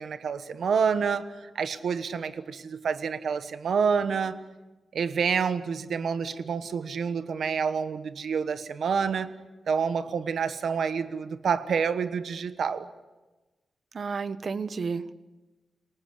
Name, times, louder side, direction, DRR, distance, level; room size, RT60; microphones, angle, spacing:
voice 1, 0.0-4.4 4.9-9.3 9.7-12.9, right 6 dB, 90° right, 11 dB, 1.2 m, -28 dB
voice 2, 13.9-15.1, right 5 dB, 55° right, 13 dB, 1.1 m, -31 dB
27.5 x 18.5 x 8.5 m, 1.2 s
wide cardioid pair, 110°, 0 cm